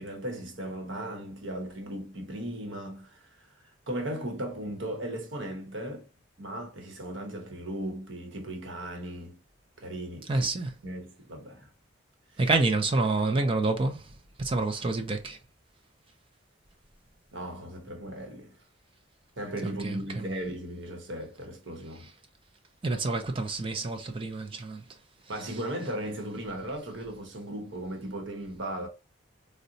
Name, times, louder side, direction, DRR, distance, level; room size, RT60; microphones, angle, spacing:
voice 1, 0.0-3.5 3.9-6.1 6.4-9.4 9.8-10.5 10.8-11.7 17.3-18.5 19.4-22.1 25.3-28.9, right 1 dB, 65° right, 0.9 m, -37 dB
voice 2, 10.3-10.7 12.4-14.0 14.4-15.4 19.8-20.2 22.8-24.8, right 3 dB, 25° right, 0.4 m, -27 dB
3.8 x 2.1 x 2.6 m
head